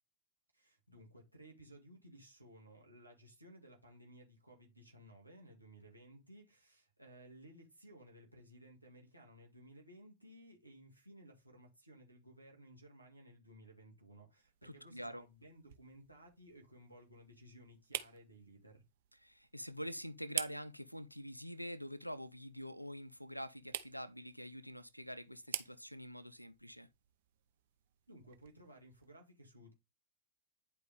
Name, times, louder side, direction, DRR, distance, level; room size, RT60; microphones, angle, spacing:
voice 1, 0.5-18.8 28.1-29.7, right 1 dB, 85° right, 2.3 m, -58 dB
sound 1, 14.4-29.2, right 13 dB, 55° right, 0.9 m, -49 dB
voice 2, 14.6-15.2 19.2-26.9, equal, 90° left, 0.6 m, -46 dB
10.5 x 4.8 x 3.6 m
figure-of-eight pair, 90°, 0 cm